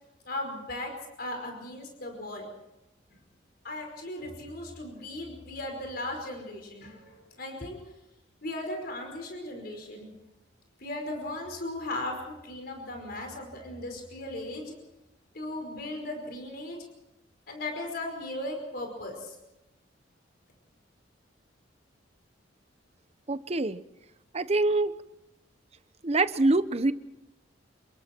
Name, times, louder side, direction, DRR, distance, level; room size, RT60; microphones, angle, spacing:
voice 1, 0.2-0.9 1.2-2.4 3.6-7.8 8.4-10.1 10.8-14.7 15.3-16.8 17.5-19.4, left 1 dB, 55° left, 3 dB, 5.1 m, -37 dB
voice 2, 23.3-23.8 24.3-24.9 26.0-26.9, right 2 dB, 35° right, 13 dB, 0.9 m, -25 dB
28.0 x 23.0 x 4.5 m, 0.94 s
head